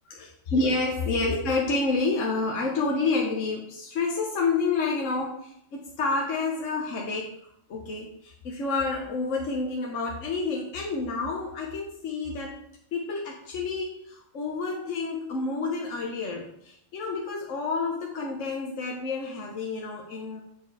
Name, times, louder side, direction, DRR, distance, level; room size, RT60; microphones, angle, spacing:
voice 1, 0.1-7.3 7.7-12.6 12.9-20.4, left 3 dB, 70° left, -1 dB, 1.4 m, -29 dB
8.0 x 4.5 x 4.7 m, 0.73 s
omnidirectional pair, 1.4 m